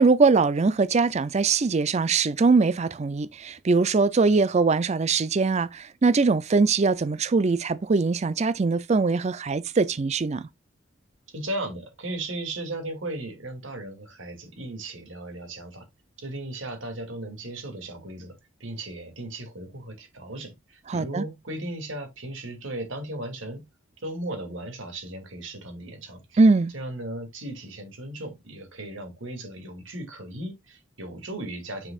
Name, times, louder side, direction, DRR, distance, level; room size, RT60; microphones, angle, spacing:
voice 1, 0.0-10.5 20.9-21.2 26.4-26.7, right 4 dB, 35° right, 0.4 m, -22 dB
voice 2, 11.3-15.9 16.2-23.6 24.0-26.4 26.7-31.9, right 1 dB, 75° right, 2.5 m, -36 dB
7.4 x 6.2 x 2.4 m
head